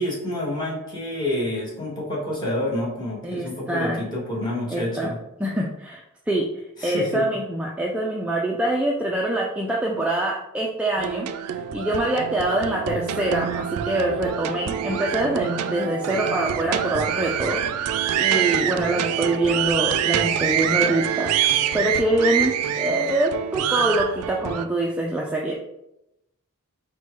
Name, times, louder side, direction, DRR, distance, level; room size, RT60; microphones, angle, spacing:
voice 1, 0.0-5.2 6.8-7.2, left 1 dB, 20° left, -6 dB, 1.4 m, -28 dB
voice 2, 3.2-4.0 4.7-5.1 5.4-6.5 6.8-21.3 21.7-25.5, right 1 dB, 5° right, -2 dB, 0.3 m, -25 dB
sound 1, 11.0-24.6, right 9 dB, 90° right, 0.3 m, -25 dB
4.4 x 2.2 x 4.6 m, 0.87 s
head